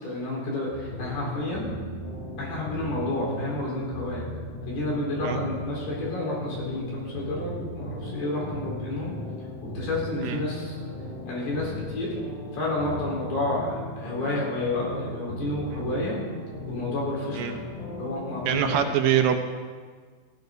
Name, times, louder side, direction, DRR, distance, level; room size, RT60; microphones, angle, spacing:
voice 1, 0.0-1.7 2.4-4.3 4.7-9.1 9.7-10.9 11.3-12.2 12.5-16.2 16.7-17.6 18.0-18.9, left 2 dB, 85° left, -4 dB, 6.2 m, -30 dB
sound 1, 0.7-18.7, left 1 dB, 60° left, 4.4 m, -37 dB
voice 2, 18.5-19.5, right 9 dB, 75° right, 6 dB, 2.4 m, -24 dB
16.5 x 14.5 x 3.9 m, 1.5 s
omnidirectional pair, 4.3 m